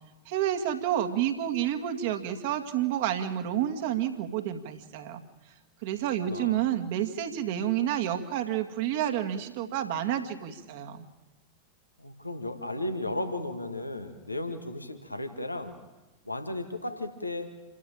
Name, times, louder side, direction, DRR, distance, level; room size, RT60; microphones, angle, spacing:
voice 1, 0.3-5.2 5.8-11.1, right 11 dB, 50° right, 6 dB, 2.2 m, -29 dB
voice 2, 6.2-6.7 12.0-15.8 16.3-17.5, left 1 dB, 85° left, 7 dB, 1.9 m, -35 dB
28.0 x 13.5 x 9.0 m, 1.1 s
figure-of-eight pair, 90°, 0 cm